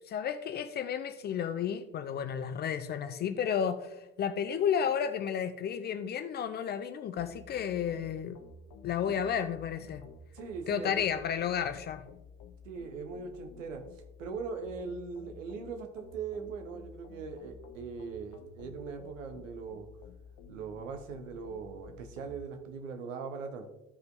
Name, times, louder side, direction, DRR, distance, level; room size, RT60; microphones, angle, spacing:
voice 1, 0.1-8.4 8.8-10.0 10.7-12.0, left 8 dB, 25° left, 9 dB, 0.4 m, -32 dB
sound 1, 7.2-22.4, left 5 dB, 45° left, 0.9 m, -52 dB
voice 2, 10.3-11.1 12.6-13.8 14.2-19.9 20.5-23.7, right 5 dB, 70° right, 6 dB, 1.1 m, -40 dB
14.0 x 5.2 x 2.6 m, 0.97 s
figure-of-eight pair, 65°, 40 cm